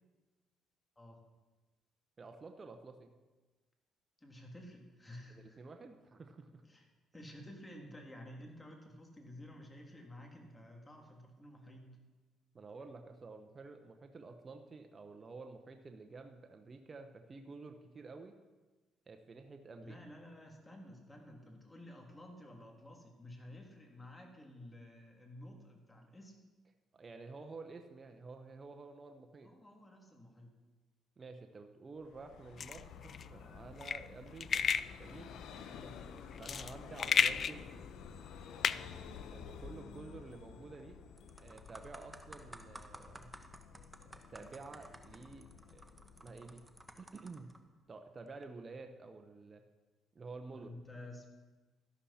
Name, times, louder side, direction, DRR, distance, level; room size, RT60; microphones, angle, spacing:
voice 1, 2.2-3.1 5.3-6.6 12.5-18.4 19.1-20.0 26.9-29.5 31.2-34.7 35.0-35.4 36.4-37.7 39.3-41.0 41.4-43.3 44.1-45.5 45.7-46.6 47.0-47.5 47.9-49.6 50.1-50.7, right 3 dB, 35° right, 5 dB, 1.0 m, -51 dB
voice 2, 4.2-5.6 6.6-6.9 7.1-12.0 19.8-26.3 29.4-30.5 35.6-36.0 38.7-38.9 50.5-51.3, left 1 dB, 15° left, 1 dB, 2.9 m, -52 dB
Vehicle, 32.0-47.5, left 6 dB, 75° left, 0.9 m, -52 dB
sound 1, 32.6-39.8, left 7 dB, 50° left, 0.4 m, -35 dB
sound 2, 40.6-40.8 41.2-47.6 48.3-48.5, right 1 dB, 15° right, 1.2 m, -54 dB
13.0 x 11.5 x 4.3 m, 1.2 s
supercardioid pair, 75°, 0 cm